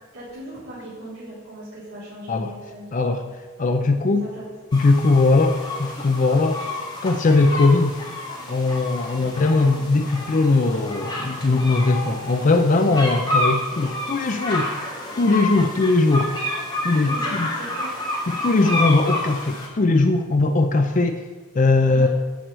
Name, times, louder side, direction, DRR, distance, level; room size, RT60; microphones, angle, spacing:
voice 1, 0.1-3.0 4.1-4.5 17.1-17.9 21.9-22.1, right 1 dB, 75° right, -10 dB, 3.6 m, -38 dB
voice 2, 2.9-3.2 3.6-4.3 4.7-8.0 8.5-14.7 15.2-16.3 16.8-17.5 18.3-21.3 21.5-22.1, left 3 dB, 35° left, 7 dB, 0.4 m, -20 dB
sound 1, 4.7-19.7, left 1 dB, 20° left, 2.1 m, -29 dB
10.0 x 4.7 x 7.9 m, 1.3 s
head